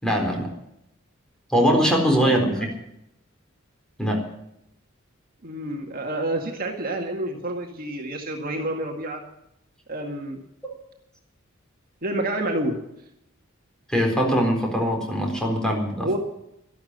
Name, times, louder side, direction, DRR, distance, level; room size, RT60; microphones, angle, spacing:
voice 1, 0.0-0.5 1.5-2.7 4.0-4.2 13.9-16.1, equal, 5° left, 1 dB, 4.1 m, -22 dB
voice 2, 5.4-9.2 9.9-10.4 12.0-12.8 16.0-16.2, right 1 dB, 45° right, 2 dB, 2.0 m, -28 dB
13.0 x 12.0 x 8.0 m, 0.81 s
head